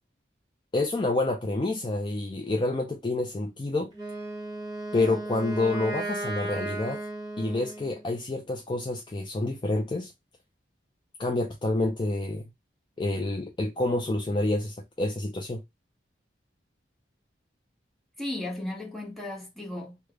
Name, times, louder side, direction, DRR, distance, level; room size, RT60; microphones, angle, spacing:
voice 1, 0.7-3.9 4.9-7.0 7.4-10.1 11.2-12.4 13.0-15.6, left 2 dB, 25° left, 0.4 m, -28 dB
Wind instrument woodwind instrument, 3.9-8.1, right 2 dB, 20° right, 1.1 m, -35 dB
voice 2, 18.2-20.1, left 1 dB, ahead, 0.8 m, -35 dB
3.2 x 2.1 x 3.4 m
head